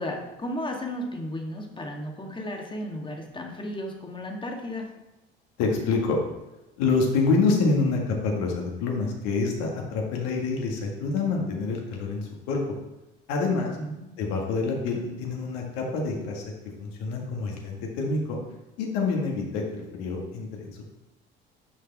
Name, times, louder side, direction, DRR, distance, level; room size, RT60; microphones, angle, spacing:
voice 1, 0.0-4.9 13.8-14.1, left 1 dB, 15° left, 1 dB, 1.8 m, -34 dB
voice 2, 5.6-6.2 6.8-12.6 13.3-13.8 14.2-16.4 16.8-18.4 18.8-20.9, left 4 dB, 65° left, 0 dB, 2.0 m, -27 dB
11.0 x 5.6 x 3.6 m, 0.98 s
figure-of-eight pair, 60°, 29 cm